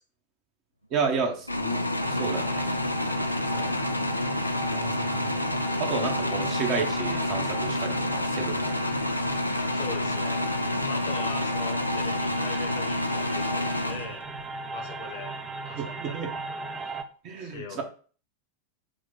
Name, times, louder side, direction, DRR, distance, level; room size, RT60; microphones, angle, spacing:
voice 1, 0.9-1.8 2.1-2.7 4.7-5.3 5.8-8.7 15.7-16.3 17.2-17.8, right 5 dB, 40° right, 3 dB, 0.9 m, -31 dB
sound 1, 1.5-14.5, left 1 dB, 85° left, 0.3 m, -28 dB
sound 2, 2.0-17.0, right 4 dB, 20° right, 0.5 m, -39 dB
voice 2, 9.7-10.4 10.8-14.2 14.7-15.3 15.7-16.3 17.4-17.8, left 6 dB, 55° left, 3 dB, 1.0 m, -40 dB
4.6 x 2.2 x 4.1 m, 0.41 s
figure-of-eight pair, 90°, 0 cm